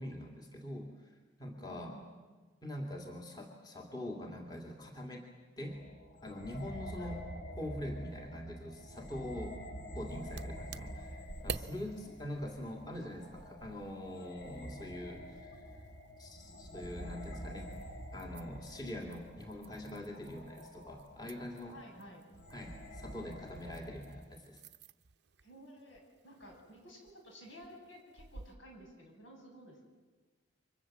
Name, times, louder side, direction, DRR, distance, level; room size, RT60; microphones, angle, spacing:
voice 1, 0.0-2.0 2.6-5.3 5.6-5.8 6.2-7.2 7.6-9.6 9.9-15.6 16.2-17.7 18.1-21.8 22.5-24.6, left 1 dB, 20° left, 1 dB, 2.4 m, -44 dB
voice 2, 1.6-2.2 7.0-7.2 10.8-11.2 21.7-22.2 25.4-29.8, equal, 75° left, 1 dB, 8.0 m, -54 dB
sound 1, 5.7-24.2, equal, 55° left, 3.7 m, -48 dB
sound 2, 10.1-28.6, right 5 dB, 60° right, 0.7 m, -51 dB
30.0 x 24.5 x 7.6 m, 1.3 s
head